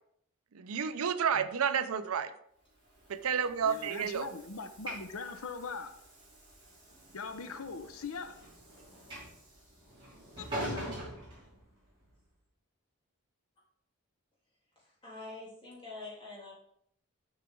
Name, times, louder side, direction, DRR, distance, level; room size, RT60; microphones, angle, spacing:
voice 1, 0.5-2.3 3.1-4.3, right 7 dB, 75° right, 0.5 m, -31 dB
Train / Sliding door, 2.8-12.1, right 1 dB, 20° right, 3.1 m, -45 dB
voice 2, 3.6-6.0 7.1-8.4 10.4-11.0, left 4 dB, 75° left, 0.7 m, -41 dB
voice 3, 14.8-16.5, left 3 dB, 20° left, 2.8 m, -46 dB
7.2 x 5.8 x 3.8 m
head